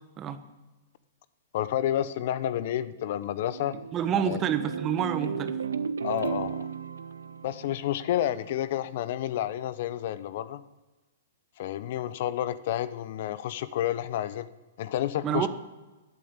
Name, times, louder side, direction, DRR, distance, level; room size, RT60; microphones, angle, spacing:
voice 1, 1.5-3.8 4.2-4.4 6.0-6.7 7.4-10.6 11.6-14.5 14.8-15.5, left 12 dB, 55° left, 16 dB, 0.7 m, -30 dB
sound 1, 3.0-8.4, right 6 dB, 85° right, 0.8 m, -35 dB
voice 2, 3.9-5.6 15.2-15.5, right 8 dB, 25° right, 10 dB, 1.2 m, -28 dB
15.0 x 8.7 x 8.9 m, 1.2 s
hypercardioid pair, 130°, 0 cm